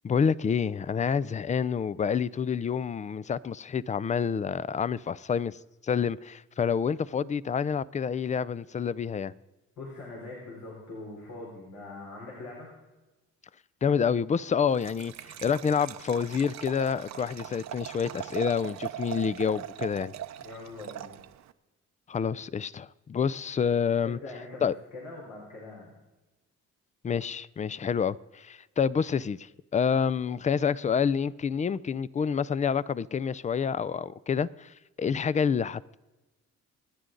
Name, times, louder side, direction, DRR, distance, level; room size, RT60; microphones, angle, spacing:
voice 1, 0.0-5.6 5.8-9.3 13.8-15.1 15.4-20.1 22.1-24.2 24.6-24.7 27.0-34.7 35.0-36.0, left 6 dB, 25° left, 0.4 m, -28 dB
voice 2, 9.8-12.7 20.4-21.2 24.0-25.9, left 2 dB, 75° left, 4.2 m, -42 dB
Liquid, 14.7-21.5, right 11 dB, 65° right, 0.7 m, -40 dB
27.0 x 9.8 x 3.9 m
cardioid pair, 90°, 30 cm